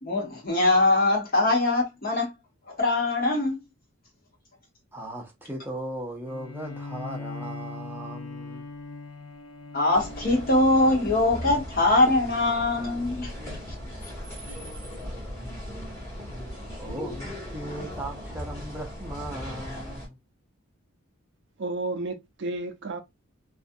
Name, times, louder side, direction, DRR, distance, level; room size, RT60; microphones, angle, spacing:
voice 1, 0.0-2.3 2.7-3.6 9.7-13.3, left 2 dB, 45° left, 1.0 m, -22 dB
voice 2, 4.9-8.7 14.4-14.6 14.9-15.0 16.8-20.2, right 1 dB, 10° right, 0.6 m, -38 dB
Bowed string instrument, 6.2-11.7, left 3 dB, 90° left, 0.7 m, -40 dB
sound 1, 9.9-20.1, equal, 15° left, 1.2 m, -38 dB
voice 3, 21.6-23.0, right 2 dB, 55° right, 0.5 m, -32 dB
2.4 x 2.4 x 2.5 m
head